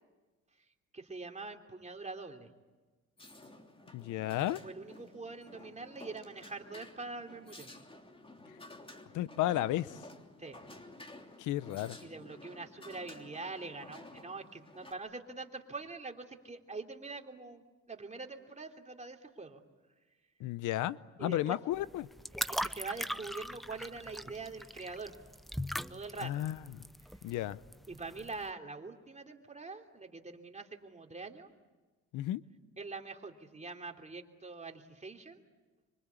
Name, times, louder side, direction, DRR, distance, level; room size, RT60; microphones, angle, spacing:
voice 1, 0.9-2.5 4.6-7.7 10.4-10.6 12.0-19.6 21.2-21.5 22.3-25.1 25.9-26.4 27.9-31.5 32.8-35.4, right 3 dB, 25° right, 3.1 m, -44 dB
sound 1, 3.2-14.9, left 2 dB, 20° left, 3.2 m, -53 dB
voice 2, 3.9-4.6 9.1-10.0 11.4-12.0 20.4-22.1 26.2-26.6 27.2-27.6 32.1-32.4, left 14 dB, 90° left, 0.8 m, -33 dB
sound 2, 21.7-28.5, equal, ahead, 0.8 m, -40 dB
25.0 x 25.0 x 8.4 m
cardioid pair, 90°, 30 cm